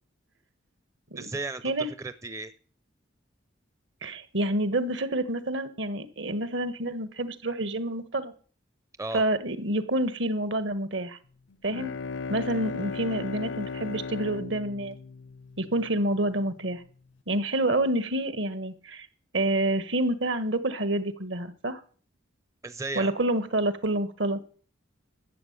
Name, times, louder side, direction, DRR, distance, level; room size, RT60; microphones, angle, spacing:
voice 1, 1.1-1.7 2.0-2.5 9.0-9.2 22.6-23.1, right 3 dB, 15° right, 12 dB, 0.5 m, -34 dB
voice 2, 4.0-8.3 9.1-11.2 11.6-11.9 12.3-14.9 15.6-16.8 17.3-19.1 19.3-21.8 22.9-24.4, right 1 dB, 65° right, 12 dB, 1.6 m, -28 dB
Bowed string instrument, 11.5-16.2, left 4 dB, 65° left, 0.5 m, -37 dB
13.0 x 7.4 x 9.4 m, 0.44 s
head